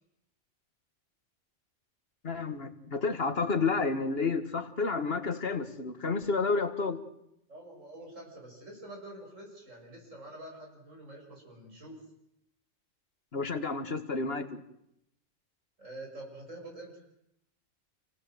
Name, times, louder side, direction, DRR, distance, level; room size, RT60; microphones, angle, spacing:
voice 1, 2.2-7.0 13.3-14.6, left 4 dB, 50° left, 9 dB, 1.9 m, -30 dB
voice 2, 7.5-12.0 15.8-17.1, right 1 dB, 75° right, 0 dB, 7.4 m, -46 dB
28.0 x 18.0 x 7.9 m, 0.79 s
omnidirectional pair, 1.3 m